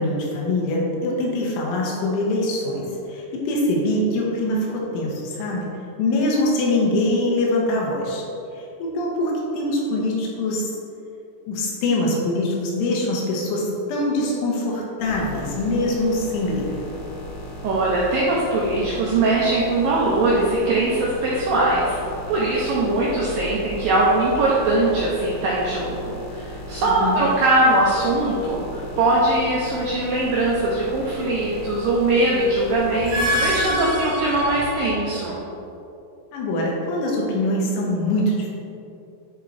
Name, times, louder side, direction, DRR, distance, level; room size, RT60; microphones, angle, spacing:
voice 1, 0.0-5.7 6.0-8.2 8.6-10.7 11.5-16.8 26.8-27.2 36.3-38.5, left 1 dB, 85° left, -3 dB, 3.7 m, -23 dB
sound 1, 15.0-33.7, left 1 dB, 60° left, 3.0 m, -36 dB
voice 2, 17.6-22.0 22.3-35.4, right 2 dB, 80° right, -5 dB, 2.0 m, -21 dB
sound 2, 32.9-35.2, equal, 60° right, 2.9 m, -25 dB
10.0 x 4.6 x 4.3 m, 2.7 s
omnidirectional pair, 5.4 m